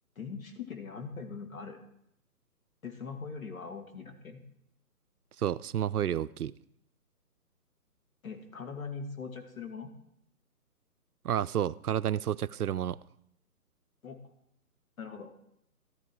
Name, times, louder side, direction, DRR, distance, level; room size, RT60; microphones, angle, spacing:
voice 1, 0.2-1.9 2.8-4.4 8.2-9.9 14.0-14.2 15.0-15.3, left 5 dB, 60° left, 2.6 m, -41 dB
voice 2, 5.4-6.5 11.2-13.0, right 10 dB, 70° right, 0.6 m, -30 dB
14.0 x 13.0 x 4.7 m
hypercardioid pair, 170°, 46 cm